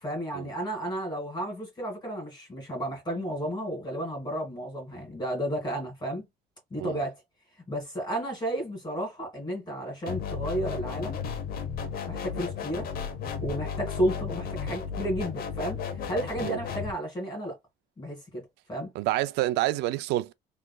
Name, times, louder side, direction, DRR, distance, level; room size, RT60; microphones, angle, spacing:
voice 1, 0.0-6.3 6.7-7.2 7.7-11.2 12.1-12.9 13.4-17.6 18.0-18.9, right 1 dB, 25° left, 2.2 m, -32 dB
sound 1, 10.1-16.9, left 6 dB, 60° left, 0.9 m, -34 dB
voice 2, 19.0-20.3, right 15 dB, 85° right, 0.4 m, -28 dB
3.6 x 3.3 x 2.2 m
cardioid pair, 110°, 17 cm